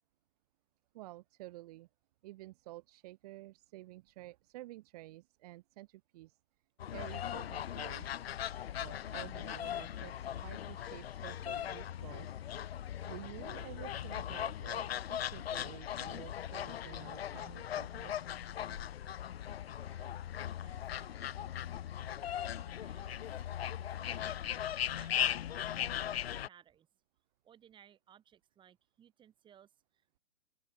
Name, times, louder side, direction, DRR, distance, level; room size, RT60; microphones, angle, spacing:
voice 1, 0.9-1.9 2.2-6.4 6.9-8.1 8.8-12.3 13.0-18.1, right 18 dB, 30° right, 2.7 m, -51 dB
sound 1, 6.8-26.5, left 10 dB, 55° left, 0.5 m, -39 dB
voice 2, 19.8-21.8 22.4-23.2 23.7-24.5 24.9-26.9 27.4-29.7, right 9 dB, 10° right, 7.7 m, -63 dB
open air
hypercardioid pair, 155°, 38 cm